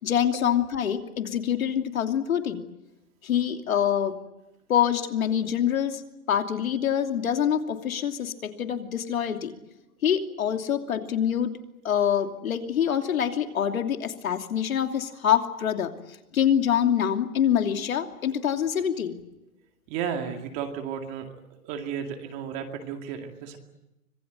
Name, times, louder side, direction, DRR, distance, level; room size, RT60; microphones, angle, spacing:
voice 1, 0.0-2.6 3.2-4.2 4.7-6.0 6.3-9.5 10.0-11.6 11.8-19.2, left 9 dB, 65° left, 5 dB, 3.0 m, -25 dB
voice 2, 19.9-21.4 21.6-23.6, right 7 dB, 20° right, 4 dB, 2.2 m, -33 dB
25.5 x 21.0 x 9.2 m, 0.96 s
hypercardioid pair, 170°, 44 cm